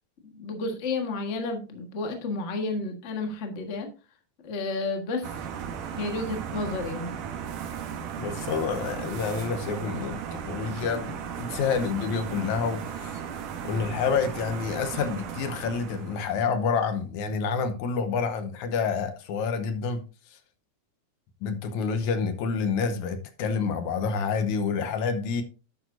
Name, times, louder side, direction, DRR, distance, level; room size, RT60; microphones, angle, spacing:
voice 1, 0.2-3.9 4.4-5.3 6.0-7.1, left 3 dB, 35° left, 1.1 m, -31 dB
sound 1, 5.2-16.5, right 7 dB, 90° right, 2.7 m, -36 dB
voice 2, 8.2-13.2 13.6-20.0 20.3-20.4 21.4-25.4, left 5 dB, 75° left, 2.2 m, -28 dB
11.0 x 8.5 x 2.6 m
omnidirectional pair, 3.5 m